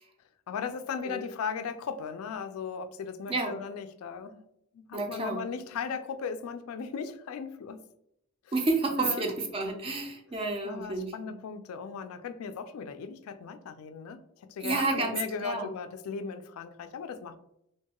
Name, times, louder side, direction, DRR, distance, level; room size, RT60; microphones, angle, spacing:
voice 1, 0.5-4.4 4.7-7.8 8.4-8.5 9.0-9.3 10.6-17.4, left 6 dB, 75° left, 10 dB, 0.3 m, -37 dB
voice 2, 4.9-5.4 8.5-11.3 14.6-15.7, right 3 dB, 25° right, 3 dB, 0.3 m, -30 dB
2.9 x 2.3 x 2.8 m, 0.77 s
head